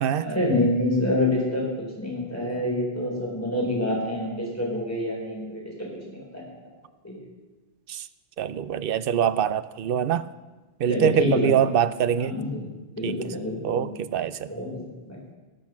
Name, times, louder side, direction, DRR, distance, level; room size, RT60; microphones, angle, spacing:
voice 1, 0.2-1.6 2.0-6.4 7.0-7.2 10.9-11.5 12.2-12.7 13.0-13.9 14.5-14.7 15.1-15.2, left 1 dB, 15° left, -3 dB, 4.1 m, -27 dB
voice 2, 8.4-10.3 10.8-12.4 13.0-13.2 13.6-14.5, right 9 dB, 65° right, 14 dB, 0.7 m, -24 dB
19.0 x 6.3 x 6.0 m, 1.2 s
omnidirectional pair, 1.1 m